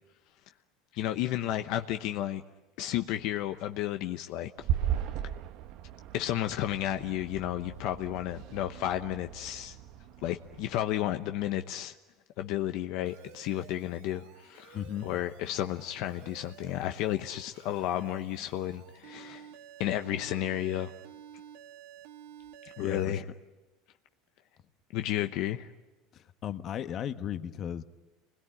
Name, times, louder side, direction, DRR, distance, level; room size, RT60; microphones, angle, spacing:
voice 1, 0.9-2.4 2.8-4.5 5.2-5.3 6.1-9.8 10.2-11.9 12.4-14.8 15.0-19.5 19.8-20.9 22.8-23.2 24.9-25.7, left 12 dB, 65° left, 7 dB, 0.9 m, -32 dB
sound 1, 4.6-10.8, right 10 dB, 60° right, 1.0 m, -37 dB
Alarm, 13.0-23.0, right 10 dB, 85° right, 2.1 m, -52 dB
voice 2, 14.7-15.2 22.8-23.2 26.1-27.8, left 9 dB, 40° left, 10 dB, 1.2 m, -36 dB
28.0 x 21.0 x 9.9 m, 1.1 s
supercardioid pair, 120°, 0 cm